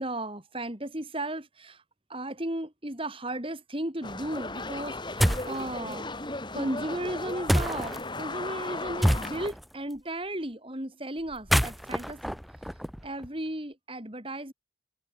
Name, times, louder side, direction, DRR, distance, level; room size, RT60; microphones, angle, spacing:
voice 1, 0.0-1.8 2.1-6.1 6.5-12.4 13.0-14.5, right 1 dB, 30° right, 3.6 m, -35 dB
sound 1, 4.0-9.5, left 2 dB, 25° left, 5.9 m, -36 dB
sound 2, 5.2-5.6 7.5-8.0 9.0-9.6 11.3-13.3, equal, ahead, 2.5 m, -26 dB
head